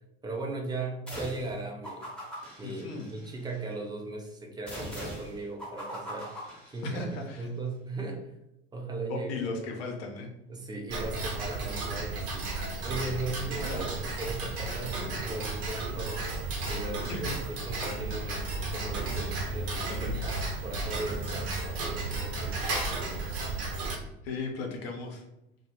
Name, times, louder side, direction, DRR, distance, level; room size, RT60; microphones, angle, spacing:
voice 1, 0.2-2.1 2.6-6.3 6.7-8.3 8.7-9.4 10.5-12.5 12.8-16.2 16.7-20.4 20.6-22.7, right 2 dB, 15° right, 1 dB, 0.5 m, -38 dB
sound 1, 1.1-1.5 1.8-3.6 4.7-7.3, equal, 5° left, 1.0 m, -41 dB
voice 2, 2.6-3.1 6.8-7.5 8.0-8.1 9.1-10.3 11.4-11.5 13.5-14.0 17.0-17.4 19.9-20.2 24.2-25.3, left 3 dB, 65° left, 2 dB, 0.7 m, -37 dB
Tick-tock, 10.9-24.0, right 2 dB, 50° right, 0.8 m, -33 dB
2.3 x 2.1 x 3.0 m, 0.86 s
figure-of-eight pair, 70°, 32 cm